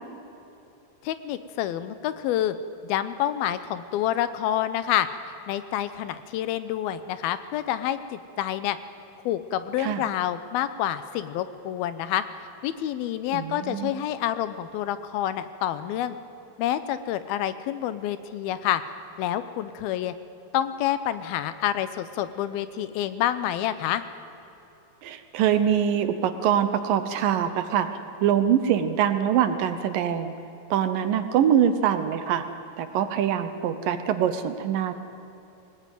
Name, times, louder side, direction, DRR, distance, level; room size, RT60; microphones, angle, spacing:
voice 1, 1.0-2.6 2.8-8.8 9.3-12.2 12.6-16.2 16.6-18.8 19.2-20.1 20.5-24.0, left 11 dB, 80° left, 13 dB, 2.6 m, -28 dB
voice 2, 13.3-13.9 25.0-27.9 28.2-30.3 30.7-32.4 32.8-34.9, right 9 dB, 70° right, 10 dB, 2.4 m, -24 dB
21.0 x 19.0 x 9.2 m, 2.9 s
omnidirectional pair, 4.5 m